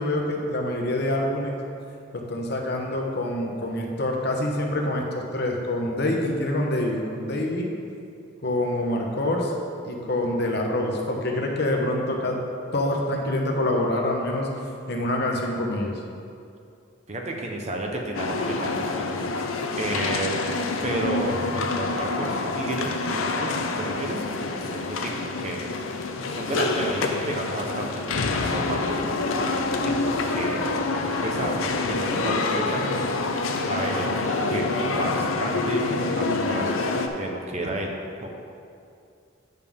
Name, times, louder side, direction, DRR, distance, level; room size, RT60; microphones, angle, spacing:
voice 1, 0.0-1.6 2.1-7.7 8.4-9.5 9.8-12.4 12.7-14.5 14.9-16.0, left 1 dB, 55° left, 0 dB, 1.0 m, -26 dB
voice 2, 17.1-19.3 19.8-20.3 20.8-24.2 24.7-25.7 26.3-29.0 29.8-30.7 31.0-33.0 33.7-37.9 38.2-38.3, right 1 dB, 35° right, 1 dB, 0.8 m, -32 dB
sound 1, 18.1-37.1, left 3 dB, 80° left, 0.6 m, -27 dB
9.1 x 6.7 x 3.6 m, 2.5 s
head